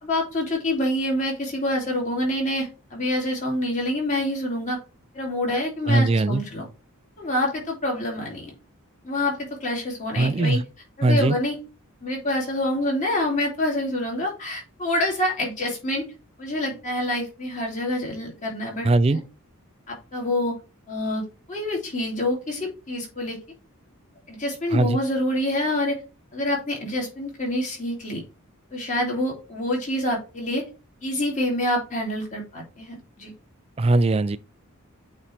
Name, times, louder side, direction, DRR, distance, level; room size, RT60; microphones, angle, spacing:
voice 1, 0.0-4.8 5.1-6.6 7.2-8.5 9.0-10.6 11.0-11.6 12.0-16.1 16.4-19.2 19.9-20.5 20.9-21.2 21.5-23.4 24.3-26.0 26.3-28.2 28.7-30.6 31.0-33.3, left 1 dB, 35° left, 2.6 m, -26 dB
voice 2, 5.9-6.4 10.2-10.6 11.0-11.4 18.8-19.2 24.7-25.0 33.8-34.4, right 2 dB, 25° right, 0.3 m, -20 dB
8.5 x 3.2 x 4.2 m
head